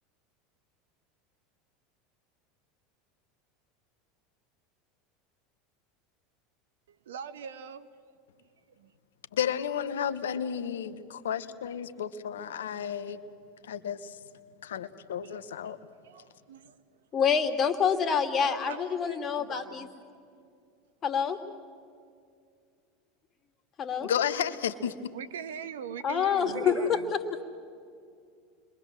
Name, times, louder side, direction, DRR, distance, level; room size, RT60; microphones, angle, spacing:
voice 1, 7.0-8.2 8.8-8.9 15.2-16.7 17.7-19.9 25.1-27.1, right 7 dB, 80° right, 1.3 m, -42 dB
voice 2, 9.3-13.2 13.6-14.2 14.6-15.8 24.0-24.9, left 8 dB, 80° left, 1.2 m, -32 dB
voice 3, 17.1-19.9 21.0-21.4 23.8-24.1 26.0-27.0, left 7 dB, 40° left, 2.7 m, -27 dB
30.0 x 23.5 x 7.6 m
hypercardioid pair, 85°, 0 cm